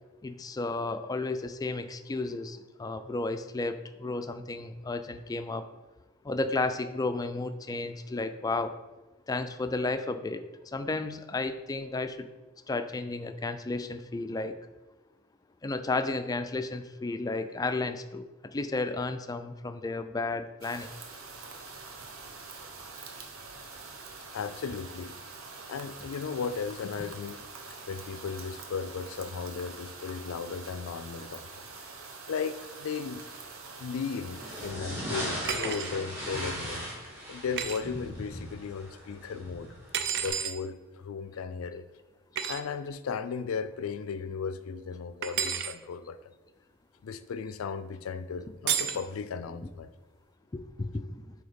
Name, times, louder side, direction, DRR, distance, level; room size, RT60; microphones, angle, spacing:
voice 1, 0.2-5.7 6.2-8.8 9.3-12.3 12.7-14.6 15.6-20.9 48.8-48.9 50.5-51.3, left 3 dB, 20° left, 10 dB, 0.3 m, -33 dB
sound 1, 20.6-34.7, right 4 dB, 75° right, 0.9 m, -45 dB
voice 2, 24.3-25.1 25.7-27.4 27.9-31.6 32.3-33.2 33.8-36.9 37.3-39.7 40.2-41.9 42.5-46.2 47.0-49.9, left 5 dB, 90° left, 13 dB, 0.4 m, -36 dB
sound 2, 34.3-40.3, equal, 10° right, 1.6 m, -38 dB
sound 3, 35.4-35.9 37.6-37.8 39.9-40.6 42.4-42.6 45.2-45.7 48.7-49.0, right 8 dB, 55° right, 0.4 m, -31 dB
7.6 x 2.8 x 5.2 m, 1.2 s
head